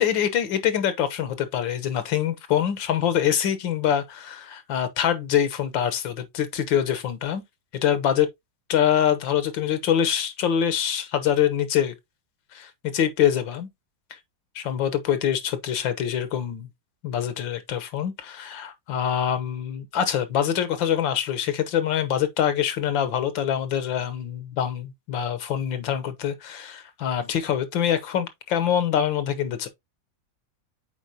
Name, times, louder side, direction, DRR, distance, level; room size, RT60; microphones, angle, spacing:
voice 1, 0.0-7.4 7.8-8.3 8.7-11.9 12.5-13.7 14.6-16.7 17.0-29.7, left 9 dB, 85° left, 1.8 m, -24 dB
8.0 x 4.5 x 2.8 m
omnidirectional pair, 2.0 m